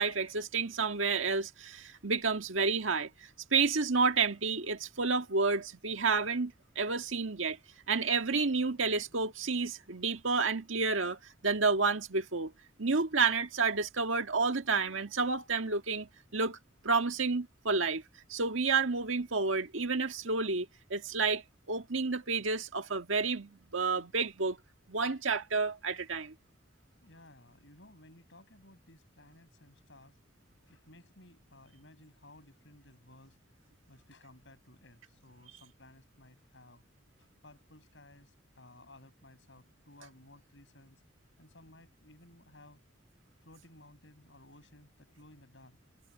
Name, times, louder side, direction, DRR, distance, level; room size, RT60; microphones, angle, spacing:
voice 1, 0.0-3.1 3.5-7.6 7.9-12.5 12.8-16.6 16.8-18.0 18.3-21.4 21.7-24.6 24.9-26.3, right 4 dB, 90° right, 1.8 m, -30 dB
voice 2, 27.0-30.2 30.7-33.4 33.9-36.8 37.2-41.0 41.4-42.8 43.4-45.8, left 1 dB, 70° left, 7.6 m, -57 dB
head